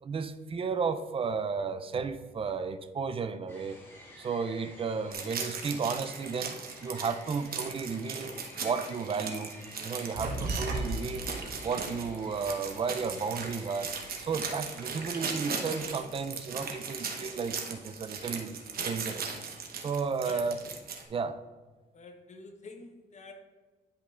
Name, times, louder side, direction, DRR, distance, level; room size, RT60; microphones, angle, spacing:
voice 1, 0.0-3.8 4.2-9.5 9.8-11.4 11.6-13.9 14.2-19.4 19.8-20.6 21.1-21.4, right 5 dB, 30° right, 10 dB, 0.4 m, -33 dB
sound 1, 3.5-15.9, left 1 dB, 15° left, 1.7 m, -51 dB
sound 2, 5.1-21.0, right 5 dB, 60° right, 0.9 m, -38 dB
sound 3, 10.1-15.1 15.4-16.8 17.1-17.9 18.2-19.6 20.0-20.7, right 2 dB, 75° right, 1.3 m, -39 dB
voice 2, 21.9-23.3, left 3 dB, 40° left, 4 dB, 0.9 m, -47 dB
10.5 x 5.2 x 2.5 m, 1.3 s
cardioid pair, 120°, 18 cm